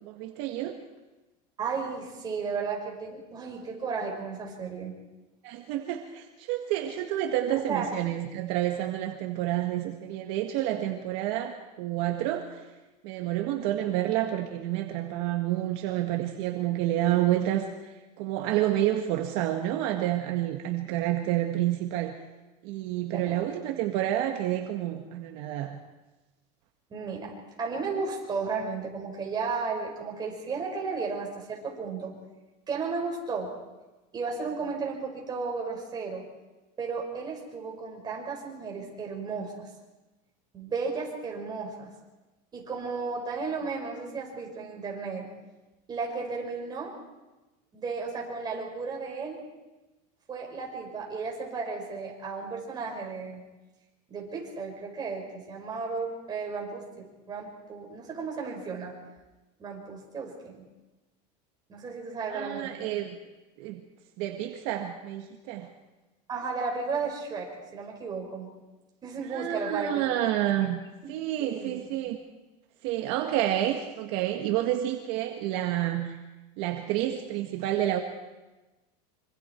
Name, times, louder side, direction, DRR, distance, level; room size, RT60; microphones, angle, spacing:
voice 1, 0.0-0.8 5.4-12.6 13.0-22.2 22.6-25.8 62.3-63.1 63.6-63.8 64.2-65.7 69.3-72.2 72.8-76.2 76.6-78.0, right 13 dB, 55° right, 3 dB, 1.7 m, -29 dB
voice 2, 1.6-5.0 7.5-7.9 23.1-23.4 26.9-32.2 32.7-33.5 34.1-36.3 36.8-39.7 40.5-41.9 42.5-45.3 45.9-46.9 47.7-49.4 50.3-53.4 54.1-59.0 59.6-60.6 61.7-63.0 66.3-68.5 69.0-70.1 71.4-71.8, right 4 dB, 20° right, 0 dB, 5.3 m, -34 dB
25.5 x 25.5 x 4.6 m, 1.1 s
supercardioid pair, 155°, 20 cm